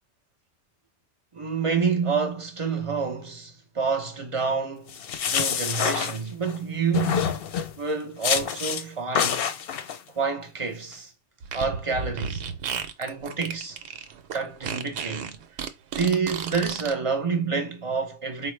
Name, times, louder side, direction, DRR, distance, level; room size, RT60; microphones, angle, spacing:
voice 1, 1.3-5.0 5.3-7.3 7.8-9.5 10.2-11.1 11.5-12.4 13.0-13.8 14.3-15.4 16.0-18.5, right 5 dB, 35° right, 0.6 m, -28 dB
sound 1, 4.9-6.6 6.9-7.8 8.2-8.8 9.2-10.0, left 7 dB, 65° left, 0.7 m, -26 dB
Fart, 11.4-16.9, right 7 dB, 70° right, 0.8 m, -33 dB
4.4 x 2.0 x 3.1 m
omnidirectional pair, 1.2 m